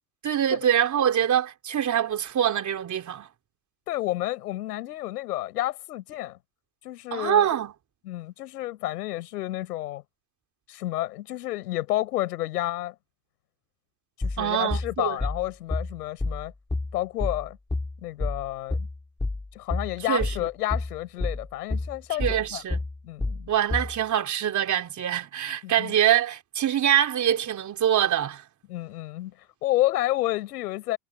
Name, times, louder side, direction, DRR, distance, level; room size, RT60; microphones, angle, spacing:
voice 1, 0.2-3.3 7.1-7.7 14.4-15.2 20.1-20.3 22.2-22.8 23.5-28.4, right 10 dB, 40° right, 3.5 m, -24 dB
voice 2, 3.9-6.4 6.8-7.5 8.0-10.0 10.7-12.9 14.2-16.5 16.9-17.6 18.0-18.9 19.5-22.6 23.0-23.5 25.6-25.9 28.7-29.3 29.6-31.0, left 15 dB, 90° left, 6.7 m, -30 dB
sound 1, 14.2-24.0, left 2 dB, 10° left, 2.9 m, -29 dB
supercardioid pair, 95°, 46 cm